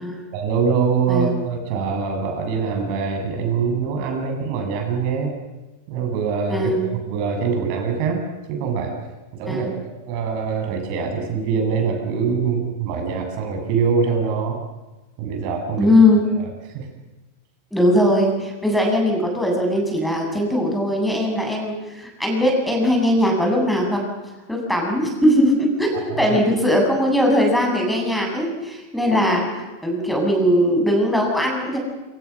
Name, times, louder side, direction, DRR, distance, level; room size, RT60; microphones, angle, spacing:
voice 1, 0.3-5.3 5.9-8.9 9.3-9.7 10.1-14.6 15.2-16.0 16.4-16.9 26.1-26.3, right 5 dB, 45° right, 3 dB, 7.8 m, -24 dB
voice 2, 1.1-1.4 6.5-6.9 9.5-9.7 15.8-16.3 17.7-24.0 24.5-31.8, left 1 dB, ahead, 1 dB, 7.8 m, -20 dB
28.0 x 27.5 x 6.2 m, 1.1 s
figure-of-eight pair, 90°, 0 cm